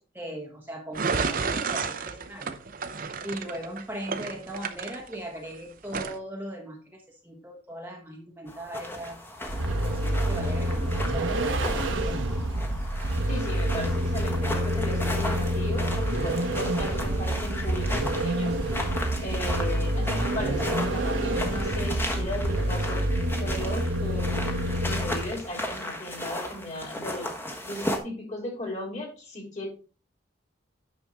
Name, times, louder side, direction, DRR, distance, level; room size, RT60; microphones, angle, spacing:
voice 1, 0.0-2.6 3.2-9.2 9.7-12.2, right 1 dB, 10° right, 1 dB, 1.0 m, -39 dB
sound 1, 0.9-5.5 5.9-6.2, right 5 dB, 50° right, 0.7 m, -31 dB
sound 2, 8.5-28.0, left 1 dB, 10° left, 1.2 m, -36 dB
Vehicle, 9.5-25.4, right 1 dB, 85° right, 1.2 m, -27 dB
voice 2, 13.3-18.6 19.2-23.0 23.4-24.5 24.8-27.3 27.6-29.7, left 1 dB, 40° left, 0 dB, 3.4 m, -36 dB
9.7 x 6.1 x 3.6 m, 0.37 s
head